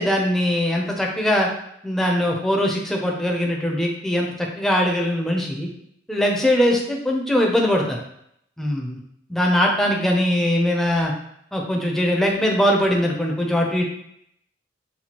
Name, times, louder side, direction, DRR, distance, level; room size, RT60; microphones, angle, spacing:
voice 1, 0.0-1.5 1.8-5.7 6.1-8.0 8.6-9.0 9.3-11.1 11.5-13.9, equal, ahead, -1 dB, 0.5 m, -21 dB
5.8 x 2.3 x 2.9 m, 0.73 s
head